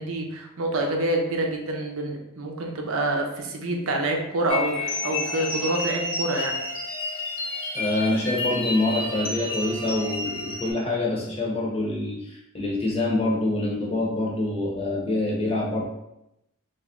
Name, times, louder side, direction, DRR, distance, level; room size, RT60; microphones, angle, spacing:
voice 1, 0.0-6.6, right 1 dB, 90° right, 2 dB, 0.6 m, -27 dB
sound 1, 4.5-10.7, left 2 dB, 65° left, 0.9 m, -30 dB
voice 2, 7.7-15.8, left 2 dB, 30° left, -3 dB, 0.7 m, -26 dB
3.1 x 2.5 x 3.6 m, 0.85 s
head